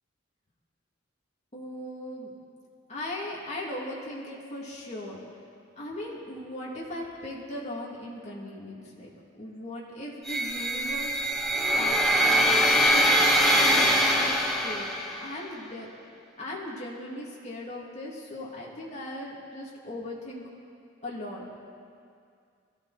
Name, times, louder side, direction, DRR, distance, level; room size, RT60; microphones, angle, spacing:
voice 1, 1.5-2.3 2.9-5.2 5.7-11.4 11.7-14.4 14.6-14.8 15.2-15.9 16.4-20.4 21.0-21.5, left 1 dB, 35° left, -5 dB, 3.2 m, -38 dB
sound 1, 10.3-15.3, equal, ahead, 1.2 m, -23 dB
21.5 x 14.0 x 4.5 m, 2.3 s
head